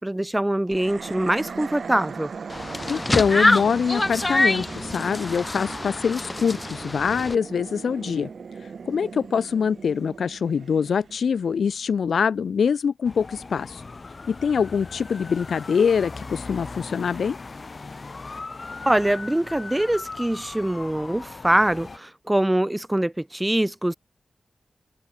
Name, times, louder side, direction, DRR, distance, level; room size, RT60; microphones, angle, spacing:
voice 1, 0.0-2.3 18.9-23.9, right 1 dB, 10° right, 0.9 m, -23 dB
sound 1, 0.7-12.0, right 5 dB, 70° right, 2.9 m, -39 dB
sound 2, 2.5-7.4, left 2 dB, 25° left, 0.8 m, -25 dB
voice 2, 2.9-8.3 8.8-13.8 14.3-17.4, left 6 dB, 90° left, 1.1 m, -24 dB
sound 3, 13.0-22.0, left 3 dB, 40° left, 4.4 m, -38 dB
wide cardioid pair, 90°, 0 cm